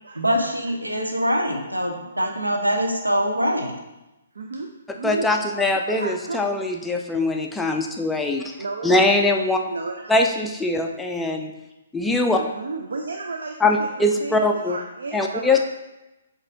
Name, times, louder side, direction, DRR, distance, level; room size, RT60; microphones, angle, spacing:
voice 1, 0.1-3.7, equal, 85° right, 2 dB, 0.8 m, -23 dB
voice 2, 4.3-5.3 5.9-6.4 8.6-9.1 9.7-10.1 12.3-15.6, right 3 dB, 65° right, 3 dB, 0.4 m, -33 dB
voice 3, 5.0-8.4 8.8-9.6 10.1-11.5 11.9-12.4 13.6-14.8 15.1-15.6, left 2 dB, 5° left, 2 dB, 0.3 m, -22 dB
7.1 x 2.6 x 2.5 m, 0.98 s
figure-of-eight pair, 130°, 0 cm